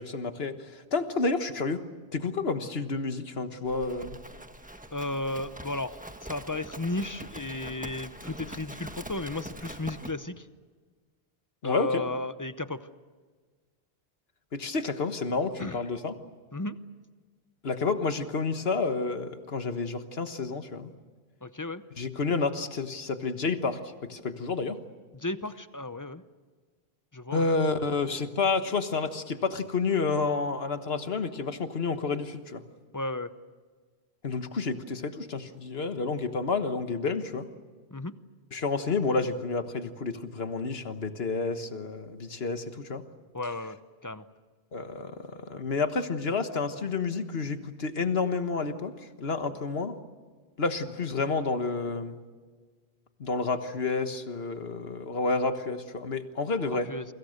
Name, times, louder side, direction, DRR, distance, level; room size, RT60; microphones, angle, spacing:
voice 1, 0.0-1.8 2.1-4.2 11.6-12.1 14.5-16.1 17.6-20.9 22.0-24.8 27.3-32.6 34.2-37.5 38.5-43.0 44.7-49.9 50.6-52.2 53.2-56.9, left 4 dB, 70° left, 9 dB, 1.7 m, -30 dB
Livestock farm animals working animals, 3.7-10.1, right 1 dB, 10° right, 1.3 m, -43 dB
voice 2, 4.9-10.5 11.6-12.9 15.6-15.8 16.5-16.8 21.4-21.8 25.1-26.2 27.1-27.5 32.9-33.3 37.9-38.1 43.3-44.3 56.7-57.1, left 2 dB, 20° left, 12 dB, 0.7 m, -34 dB
28.5 x 25.0 x 6.6 m, 1.5 s
omnidirectional pair, 1.1 m